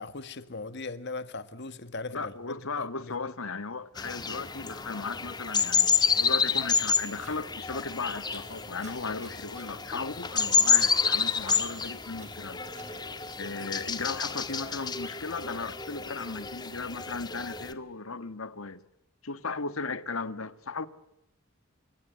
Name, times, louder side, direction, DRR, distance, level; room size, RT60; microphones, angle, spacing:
voice 1, 0.0-2.7 3.0-3.3 15.1-15.2, left 3 dB, 55° left, 1.8 m, -39 dB
voice 2, 2.1-12.6 13.4-18.8 19.2-20.9, left 4 dB, 75° left, 1.5 m, -36 dB
sound 1, 4.0-17.7, left 5 dB, 20° left, 1.6 m, -29 dB
sound 2, 6.7-14.6, right 3 dB, 35° right, 7.6 m, -53 dB
27.0 x 23.5 x 9.1 m
head